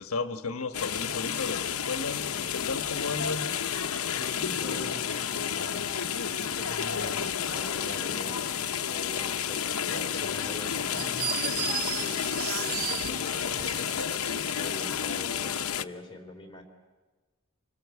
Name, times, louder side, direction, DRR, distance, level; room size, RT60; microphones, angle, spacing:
voice 1, 0.0-3.5, left 4 dB, 75° left, 8 dB, 1.3 m, -34 dB
sound 1, 0.7-15.8, left 8 dB, 90° left, 0.9 m, -31 dB
voice 2, 4.1-5.8 6.1-16.6, left 1 dB, 25° left, 2 dB, 3.4 m, -44 dB
sound 2, 10.9-14.9, right 9 dB, 70° right, 0.8 m, -35 dB
27.5 x 20.5 x 8.4 m, 1.2 s
head